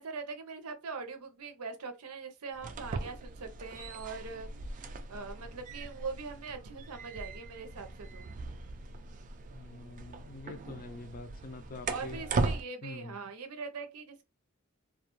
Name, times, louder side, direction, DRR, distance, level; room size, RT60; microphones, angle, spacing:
voice 1, 0.0-4.5 4.8-8.4 11.9-14.2, right 4 dB, 90° right, 0.6 m, -42 dB
sound 1, 2.5-12.6, right 3 dB, 35° right, 0.3 m, -39 dB
voice 2, 9.5-12.2 12.8-13.2, left 2 dB, 40° left, 0.4 m, -45 dB
2.3 x 2.3 x 2.9 m
head